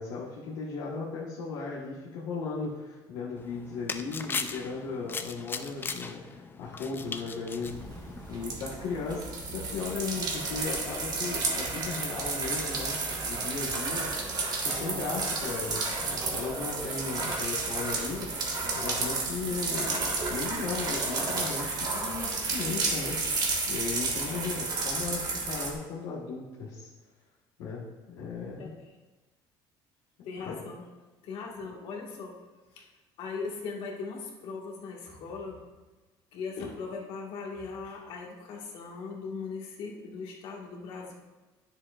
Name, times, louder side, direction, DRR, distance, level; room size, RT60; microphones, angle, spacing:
voice 1, 0.0-8.0 8.3-14.3 14.6-18.4 18.7-26.9 27.6-28.7 30.3-30.6, left 4 dB, 85° left, -8 dB, 1.4 m, -36 dB
sound 1, 3.4-8.6, left 4 dB, 20° left, 0.4 m, -38 dB
sound 2, 7.7-25.7, right 3 dB, 45° right, 1.6 m, -32 dB
voice 2, 28.6-28.9 30.2-30.8 31.2-32.4 32.7-32.9 33.2-35.6 36.3-41.1, left 4 dB, 70° left, -1 dB, 1.7 m, -39 dB
9.7 x 7.2 x 2.5 m, 1.2 s
cardioid pair, 115°, 9 cm